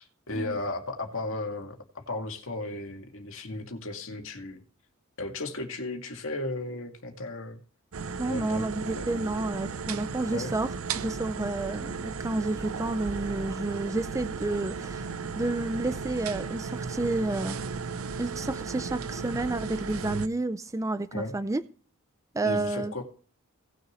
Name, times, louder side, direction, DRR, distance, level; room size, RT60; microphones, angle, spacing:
voice 1, 0.0-4.6 5.2-7.6 8.2-8.7 9.0-9.1 10.3-10.5 21.1-21.3 22.4-23.1, left 2 dB, 65° left, 2.1 m, -35 dB
sound 1, 7.9-20.3, right 5 dB, 70° right, 0.6 m, -35 dB
voice 2, 8.2-10.7 10.9-17.6 18.2-21.6 22.3-22.9, right 2 dB, 15° right, 0.4 m, -30 dB
18.0 x 6.6 x 3.1 m
head